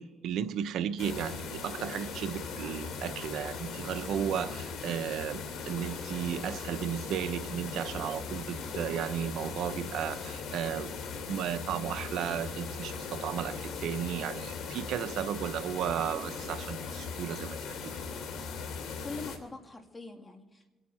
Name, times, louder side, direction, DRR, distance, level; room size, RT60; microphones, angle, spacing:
voice 1, 0.0-10.9 11.3-17.9, right 9 dB, 80° right, 9 dB, 0.8 m, -34 dB
sound 1, 1.0-19.4, left 5 dB, 80° left, 2.5 m, -39 dB
voice 2, 19.0-20.7, left 3 dB, 20° left, 3 dB, 2.5 m, -44 dB
27.5 x 9.2 x 4.3 m, 1.3 s
cardioid pair, 90°, 0 cm